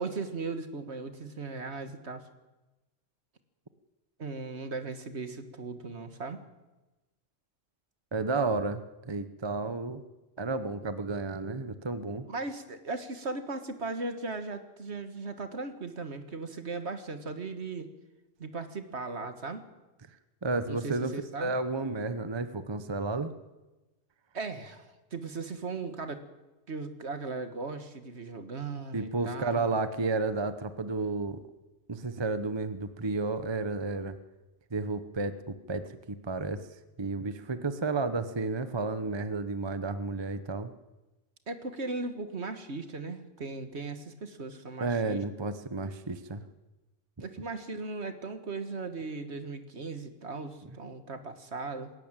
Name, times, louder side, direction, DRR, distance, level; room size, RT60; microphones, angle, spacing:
voice 1, 0.0-2.2 4.2-6.4 12.3-17.9 18.4-19.6 20.7-21.5 24.3-26.2 26.7-29.8 41.5-45.2 47.2-51.9, right 3 dB, 60° right, 9 dB, 1.9 m, -37 dB
voice 2, 8.1-10.0 10.4-12.3 20.4-21.1 21.4-23.3 28.9-31.4 31.9-34.2 34.7-36.6 37.0-40.7 44.8-46.4, right 3 dB, 25° right, 11 dB, 0.9 m, -32 dB
20.5 x 17.5 x 9.1 m, 1.1 s
omnidirectional pair, 1.3 m